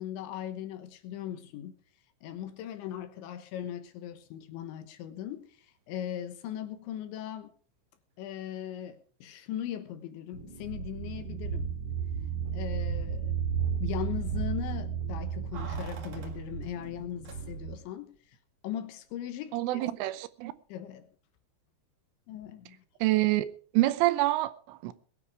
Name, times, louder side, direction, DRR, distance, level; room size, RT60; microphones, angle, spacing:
voice 1, 0.0-1.8 2.2-7.5 8.2-11.7 12.5-13.3 13.8-18.4 18.6-19.8 20.7-21.1 22.3-22.8, left 11 dB, 75° left, 3.3 m, -39 dB
sound 1, 10.3-17.8, right 7 dB, 35° right, 4.5 m, -33 dB
Keys jangling, 15.5-17.9 18.1-18.2, right 5 dB, 55° right, 1.9 m, -48 dB
voice 2, 19.5-20.5 23.0-24.9, right 17 dB, 80° right, 3.2 m, -27 dB
20.5 x 10.0 x 4.8 m
omnidirectional pair, 5.8 m